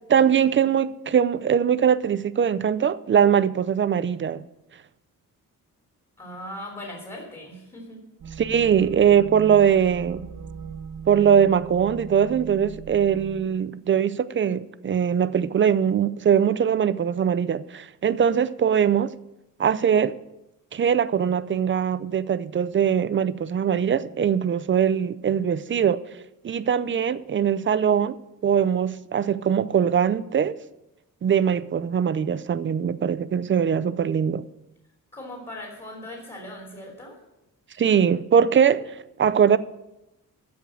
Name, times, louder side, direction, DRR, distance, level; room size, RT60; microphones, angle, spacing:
voice 1, 0.1-4.4 8.4-10.3 11.1-19.1 19.6-20.1 20.7-26.0 26.4-28.2 28.4-30.6 31.2-34.5 37.8-39.6, right 8 dB, 35° right, 0.5 m, -21 dB
voice 2, 6.2-8.0 35.1-37.2, left 1 dB, 20° left, 3.0 m, -39 dB
sound 1, 8.2-13.5, right 7 dB, 60° right, 1.2 m, -39 dB
14.5 x 5.2 x 8.8 m
wide cardioid pair, 160°, 34 cm